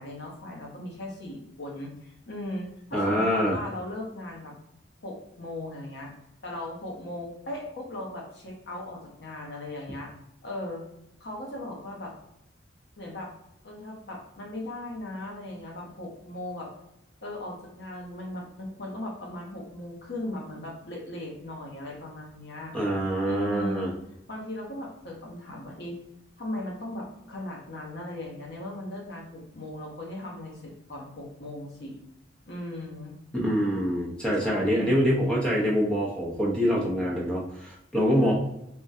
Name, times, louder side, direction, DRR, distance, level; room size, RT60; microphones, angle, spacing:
voice 1, 0.0-4.5 5.0-6.1 6.4-10.1 10.4-10.8 11.2-12.1 13.0-13.3 13.6-16.7 17.2-22.7 23.2-23.9 24.3-26.0 26.4-32.0 32.5-33.2 34.4-35.1 37.9-38.3, left 1 dB, 60° left, -1 dB, 0.8 m, -37 dB
voice 2, 2.9-3.6 22.7-23.9 33.3-38.3, equal, 5° left, -4 dB, 0.7 m, -25 dB
3.5 x 2.2 x 2.6 m, 0.81 s
head